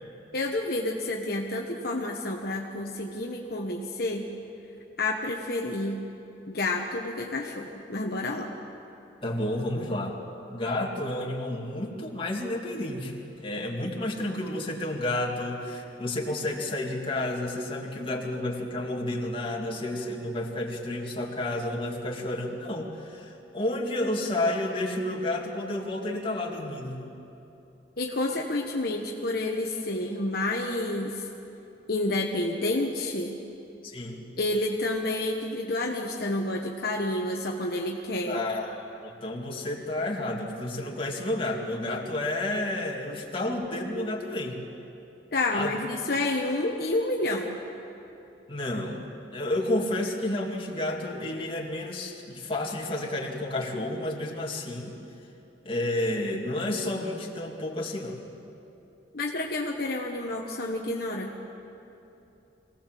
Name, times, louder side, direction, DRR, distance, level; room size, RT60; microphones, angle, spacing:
voice 1, 0.3-4.3 5.0-6.0 6.5-8.5 28.0-31.3 31.9-33.4 34.4-38.4 45.3-47.6 59.1-61.3, left 2 dB, 55° left, 0 dB, 1.2 m, -29 dB
voice 2, 9.2-10.2 10.5-27.0 33.8-34.3 38.3-44.6 45.5-45.7 48.5-49.1 49.3-54.9 55.6-58.2, left 1 dB, 30° left, -1 dB, 2.4 m, -31 dB
23.5 x 17.5 x 7.6 m, 2.9 s
head